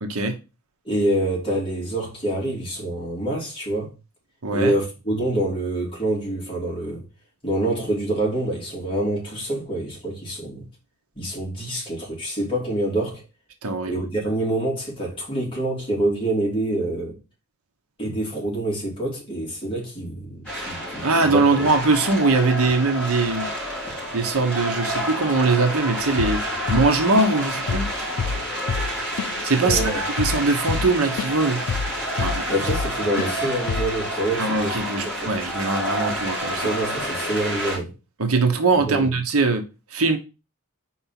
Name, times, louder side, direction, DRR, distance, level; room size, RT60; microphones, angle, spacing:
voice 1, 0.8-3.9 4.5-7.0 7.4-10.7 11.1-13.2 13.9-17.2 18.0-21.7 29.6-30.0 32.5-34.8 35.0-35.3 36.5-37.9 38.8-39.0, right 1 dB, 25° left, 2.9 m, -26 dB
voice 2, 4.4-4.8 13.6-14.0 21.0-23.5 24.1-26.4 26.7-27.9 29.4-31.6 32.2-32.4 34.4-36.7 38.2-39.6 39.9-40.2, right 3 dB, 80° right, 1.1 m, -21 dB
sound 1, 20.4-37.8, equal, 5° left, 3.5 m, -29 dB
Drum kit / Drum, 26.2-26.4 26.7-27.4 27.7-27.9 28.2-31.4 31.7-32.9 33.2-33.4 33.7-34.0, left 5 dB, 85° left, 0.5 m, -27 dB
4.7 x 4.3 x 5.9 m
head